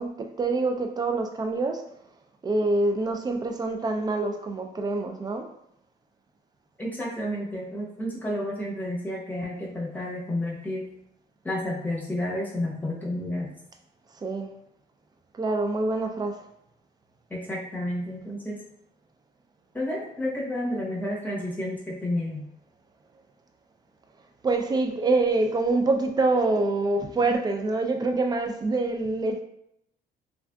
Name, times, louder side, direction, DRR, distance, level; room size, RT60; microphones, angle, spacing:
voice 1, 0.0-1.8 2.4-5.5 14.2-14.5 15.4-16.4 24.4-29.4, right 3 dB, 25° right, 5 dB, 0.4 m, -25 dB
voice 2, 6.8-10.8 11.4-13.5 17.3-18.6 19.7-22.5, left 1 dB, 10° left, -5 dB, 0.9 m, -31 dB
3.4 x 2.5 x 2.3 m, 0.77 s
cardioid pair, 110°, 17 cm